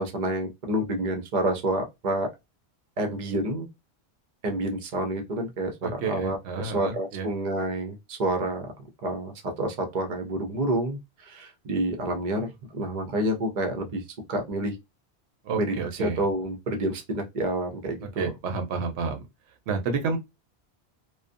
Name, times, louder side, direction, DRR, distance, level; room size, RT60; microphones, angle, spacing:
voice 1, 0.0-2.3 3.0-3.7 4.4-8.7 9.0-14.0 14.3-14.7 15.6-15.7 16.0-18.3, right 1 dB, 45° right, 0.7 m, -28 dB
voice 2, 5.8-7.3 15.4-16.2 18.2-19.2 19.7-20.2, right 5 dB, 75° right, 0.9 m, -30 dB
2.5 x 2.3 x 2.5 m
omnidirectional pair, 1.1 m